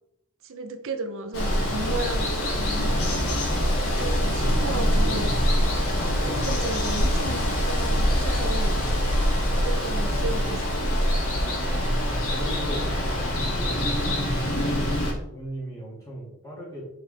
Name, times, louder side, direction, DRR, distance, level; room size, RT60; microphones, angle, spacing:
voice 1, 0.4-2.9 3.8-5.3 5.9-8.8 9.4-10.9, right 2 dB, 65° right, 8 dB, 0.8 m, -34 dB
Water, 1.3-15.1, equal, 75° left, 1.9 m, -24 dB
sound 1, 2.9-10.8, left 3 dB, 40° left, 0.5 m, -41 dB
sound 2, 3.0-9.1, right 1 dB, 20° right, 0.5 m, -35 dB
voice 2, 11.7-12.9 13.5-14.0 14.5-16.8, right 1 dB, 15° left, -5 dB, 2.1 m, -38 dB
7.1 x 4.7 x 3.5 m, 0.81 s
head